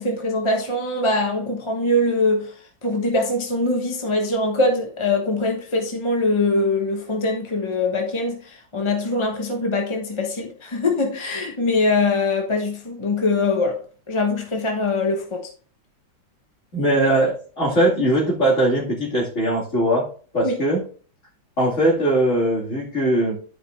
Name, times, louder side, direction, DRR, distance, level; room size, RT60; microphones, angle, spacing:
voice 1, 0.0-2.5 2.8-13.8 14.1-15.5 20.4-20.6, left 2 dB, 20° left, 0.9 m, -22 dB
voice 2, 16.7-20.1 20.3-20.8 21.6-23.4, right 1 dB, 45° left, 2.8 m, -20 dB
12.0 x 5.0 x 2.6 m
omnidirectional pair, 1.9 m